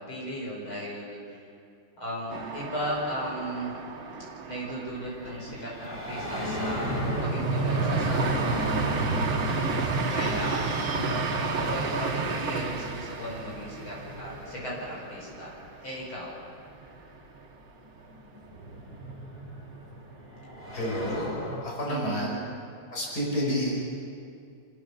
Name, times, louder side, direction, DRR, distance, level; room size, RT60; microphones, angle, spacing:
voice 1, 0.0-1.5 2.0-3.8 4.4-9.2 10.1-10.7 11.3-16.4 21.9-22.3, equal, 85° left, -4 dB, 6.3 m, -36 dB
sound 1, 2.3-16.0 16.4-16.5 16.8-17.4, right 4 dB, 65° right, 2.9 m, -33 dB
sound 2, 4.9-15.5 16.7-16.8 17.9-21.6, right 1 dB, 25° left, 5.3 m, -33 dB
voice 2, 20.7-22.3 22.9-23.8, equal, 50° left, -3 dB, 5.7 m, -30 dB
28.0 x 16.0 x 7.1 m, 2.4 s
omnidirectional pair, 2.2 m